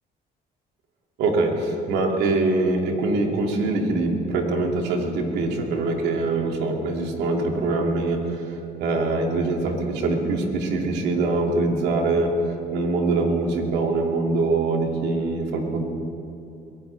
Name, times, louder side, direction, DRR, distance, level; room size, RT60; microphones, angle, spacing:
voice 1, 1.2-15.8, right 3 dB, 85° right, 1 dB, 2.4 m, -23 dB
22.5 x 17.5 x 3.4 m, 2.7 s
cardioid pair, 110°, 17 cm